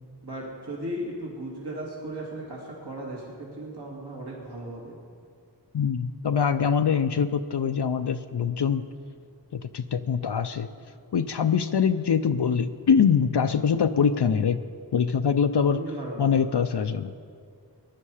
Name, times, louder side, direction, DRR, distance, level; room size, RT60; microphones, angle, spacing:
voice 1, 0.2-4.9 15.7-16.3, right 1 dB, 65° right, -4 dB, 2.7 m, -36 dB
voice 2, 5.7-8.9 9.5-10.7 11.1-14.6 14.9-15.8 16.2-17.1, left 7 dB, 70° left, 9 dB, 0.6 m, -23 dB
19.0 x 11.0 x 4.9 m, 2.2 s
wide cardioid pair, 50°, 42 cm